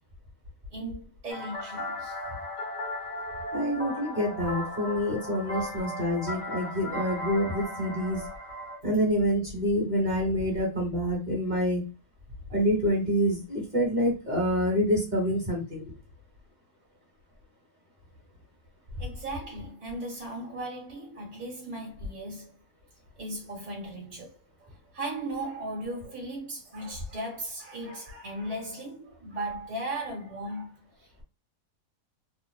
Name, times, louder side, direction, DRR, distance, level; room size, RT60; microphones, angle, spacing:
voice 1, 0.7-2.1 5.4-5.7 19.0-22.5 23.2-24.3 24.6-30.8, right 1 dB, 10° right, 0.7 m, -37 dB
sound 1, 1.3-8.8, left 1 dB, 75° left, 0.4 m, -36 dB
voice 2, 3.5-8.2 8.8-11.8 12.5-15.9, equal, 30° right, 1.1 m, -27 dB
2.6 x 2.0 x 2.3 m
omnidirectional pair, 1.7 m